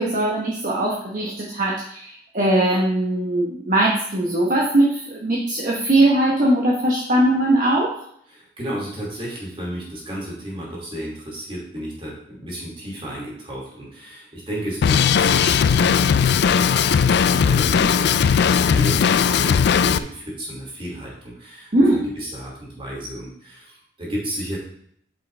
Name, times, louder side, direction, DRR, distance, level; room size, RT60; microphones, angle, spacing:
voice 1, 0.0-7.9 21.7-22.1, right 1 dB, 45° right, -3 dB, 1.1 m, -20 dB
voice 2, 8.3-24.6, right 1 dB, 30° right, -4 dB, 2.7 m, -33 dB
Drum kit, 14.8-20.0, left 7 dB, 60° left, 0.3 m, -18 dB
8.5 x 5.4 x 3.3 m, 0.67 s
head